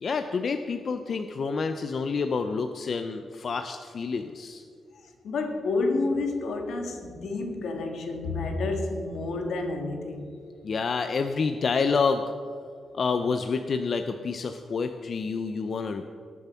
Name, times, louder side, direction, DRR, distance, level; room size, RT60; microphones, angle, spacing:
voice 1, 0.0-4.6 10.6-12.3 12.9-16.0, left 5 dB, 40° left, 7 dB, 0.5 m, -28 dB
voice 2, 4.9-10.3, left 3 dB, 75° left, 4 dB, 1.7 m, -30 dB
18.5 x 7.2 x 5.6 m, 2.2 s
wide cardioid pair, 180°, 0 cm